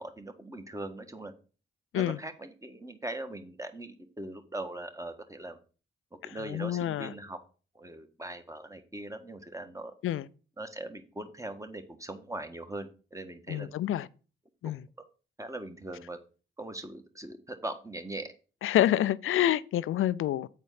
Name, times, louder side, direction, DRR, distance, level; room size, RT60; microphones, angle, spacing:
voice 1, 0.0-1.3 1.9-5.6 6.1-7.4 7.7-9.9 10.6-13.7 15.4-16.2 16.6-18.3, right 2 dB, 15° right, 1.5 m, -40 dB
voice 2, 6.5-7.1 10.0-10.3 13.5-14.1 14.6-14.8 18.6-20.5, left 12 dB, 80° left, 0.4 m, -27 dB
8.2 x 4.4 x 5.6 m
supercardioid pair, 50°, 21 cm